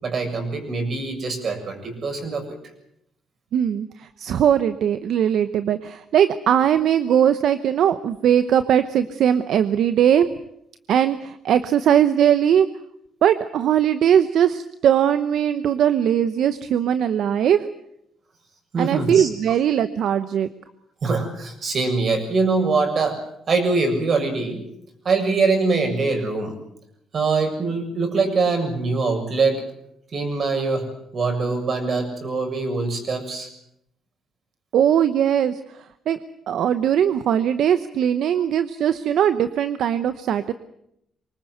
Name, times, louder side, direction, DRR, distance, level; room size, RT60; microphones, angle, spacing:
voice 1, 0.0-2.4 18.7-19.3 21.0-23.2 23.5-24.7 25.0-26.6 27.1-29.6 30.1-30.9 31.1-33.5, right 4 dB, 50° right, 5 dB, 7.2 m, -23 dB
voice 2, 3.5-10.3 10.9-12.7 13.2-17.7 18.8-20.5 34.7-35.6 36.1-36.2 36.5-40.5, right 9 dB, 70° right, 11 dB, 0.9 m, -20 dB
24.0 x 20.0 x 8.0 m, 0.77 s
cardioid pair, 90°, 0 cm